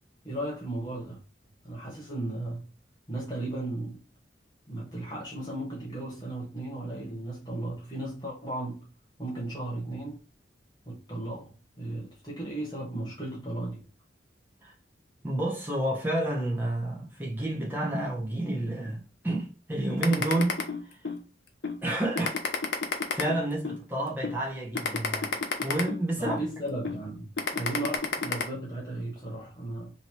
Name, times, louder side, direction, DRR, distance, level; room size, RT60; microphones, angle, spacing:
voice 1, 0.2-1.2 1.6-2.6 3.1-4.0 4.7-8.9 9.2-10.2 10.9-13.8 26.2-29.9, right 1 dB, 20° left, 1.1 m, -35 dB
voice 2, 15.2-20.6 20.9-21.0 21.8-22.4 23.1-26.4, right 1 dB, 10° right, 0.9 m, -30 dB
sound 1, 20.0-21.2 21.6-21.8 22.2-23.8 24.2-24.4 24.7-26.4 26.8-27.0 27.4-28.4, left 5 dB, 65° left, 0.7 m, -30 dB
2.9 x 2.8 x 4.4 m
head